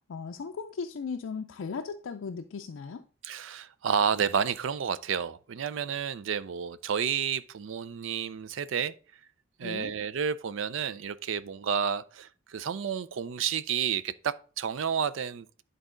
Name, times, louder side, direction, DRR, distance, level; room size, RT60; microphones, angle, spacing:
voice 1, 0.1-3.0 9.6-9.9, left 5 dB, 70° left, 0.4 m, -37 dB
voice 2, 3.2-8.9 9.6-15.6, right 7 dB, 65° right, 0.4 m, -30 dB
10.5 x 4.0 x 3.7 m
head